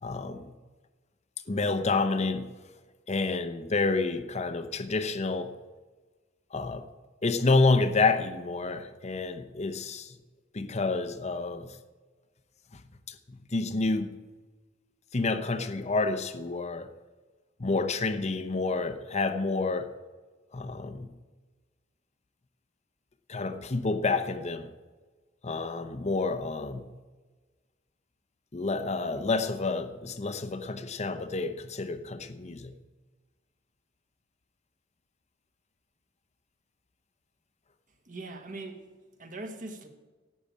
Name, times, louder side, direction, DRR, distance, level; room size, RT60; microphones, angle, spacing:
voice 1, 0.0-0.5 1.5-2.5 3.1-5.5 6.5-6.8 7.2-10.2 10.5-11.8 12.7-12.8 13.1-14.2 15.1-16.9 17.6-19.9 20.5-21.1 23.3-24.7 25.4-26.9 28.5-32.7, left 3 dB, 35° left, 0.8 m, -29 dB
voice 2, 38.0-38.9 39.2-39.9, right 2 dB, 40° right, 1.4 m, -41 dB
12.0 x 8.7 x 8.8 m
head